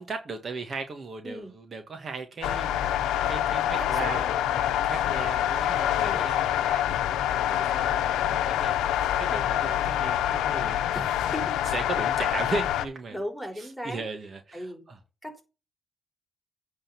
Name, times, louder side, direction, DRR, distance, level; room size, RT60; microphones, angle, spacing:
voice 1, 0.0-10.9 11.6-13.2 13.5-15.0, right 4 dB, 45° right, 1.7 m, -37 dB
sound 1, 2.4-12.9, left 11 dB, 85° left, 0.9 m, -26 dB
voice 2, 6.0-6.3 10.9-11.6 13.1-14.0 14.5-14.8 15.2-15.4, equal, ahead, 4.2 m, -37 dB
8.9 x 4.1 x 7.0 m
cardioid pair, 90°, 0 cm